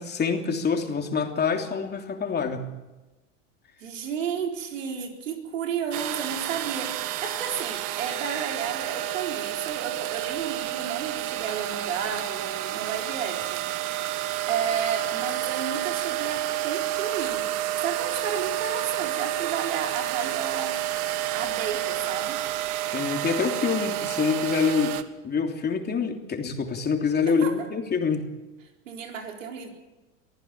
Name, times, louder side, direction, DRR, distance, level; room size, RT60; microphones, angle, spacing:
voice 1, 0.0-2.7 22.9-25.0 25.2-28.3, left 5 dB, 25° left, 3 dB, 3.2 m, -26 dB
voice 2, 3.8-13.6 14.5-17.5 17.8-20.8 21.3-22.4 27.3-27.5 28.9-29.7, right 7 dB, 85° right, 2 dB, 4.2 m, -32 dB
sound 1, 5.9-25.0, right 13 dB, 55° right, 1.6 m, -30 dB
24.0 x 14.5 x 8.9 m, 1.1 s
hypercardioid pair, 95°, 37 cm